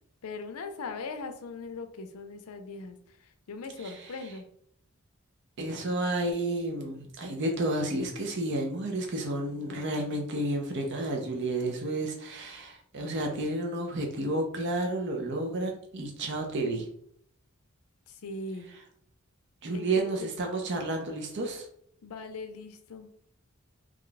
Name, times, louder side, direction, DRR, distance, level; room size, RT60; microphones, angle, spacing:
voice 1, 0.2-4.5 18.1-18.7 19.7-20.3 22.0-23.1, left 3 dB, 80° left, 7 dB, 0.5 m, -40 dB
voice 2, 3.8-4.1 5.6-16.9 19.6-21.7, right 2 dB, 50° right, 2 dB, 0.6 m, -31 dB
3.0 x 2.2 x 3.9 m, 0.67 s
head